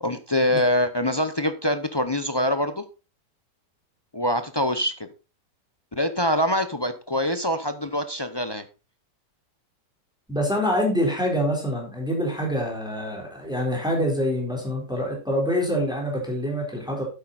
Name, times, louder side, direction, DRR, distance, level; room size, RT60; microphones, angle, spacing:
voice 1, 0.0-2.8 4.1-4.9 5.9-8.6, left 1 dB, 30° left, 10 dB, 0.4 m, -24 dB
voice 2, 10.3-17.0, equal, ahead, 0 dB, 4.1 m, -25 dB
10.5 x 8.4 x 4.1 m, 0.31 s
omnidirectional pair, 1.8 m